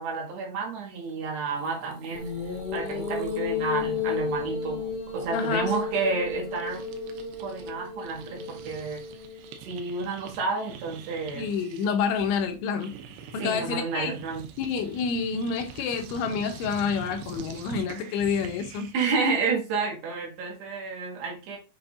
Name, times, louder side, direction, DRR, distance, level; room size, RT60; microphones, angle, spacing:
voice 1, 0.0-4.8 5.1-6.8 7.4-9.0 9.6-11.5 13.4-14.4 18.9-21.6, right 4 dB, 65° right, 3.4 m, -30 dB
sound 1, 1.3-1.4 1.5-7.7 8.0-19.1, right 8 dB, 85° right, 2.3 m, -45 dB
sound 2, 2.1-9.5, left 5 dB, 45° left, 2.5 m, -33 dB
voice 2, 5.3-5.7 11.4-12.9 13.3-14.1 14.6-18.9, left 6 dB, 80° left, 2.9 m, -28 dB
7.7 x 5.7 x 2.6 m
omnidirectional pair, 5.7 m